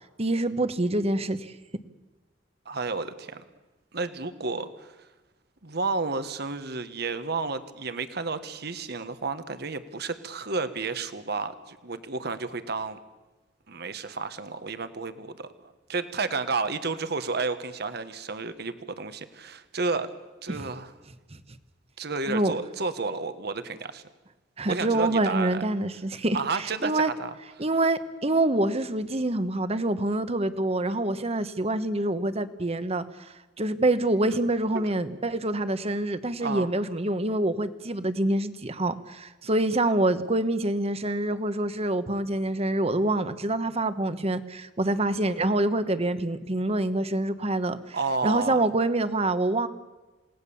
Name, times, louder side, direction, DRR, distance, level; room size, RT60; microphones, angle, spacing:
voice 1, 0.2-1.5 20.5-20.6 22.3-22.5 24.6-26.4 26.8-27.1 27.6-33.0 33.6-48.0 48.2-49.7, right 2 dB, 35° right, 11 dB, 1.2 m, -26 dB
voice 2, 2.6-3.4 3.9-4.9 5.6-13.0 13.7-20.1 20.4-20.9 22.0-24.0 24.7-25.6 26.3-27.3 34.7-34.9 36.4-36.7 47.9-48.6, right 4 dB, 60° right, 11 dB, 1.4 m, -31 dB
28.5 x 18.5 x 7.1 m, 1.1 s
head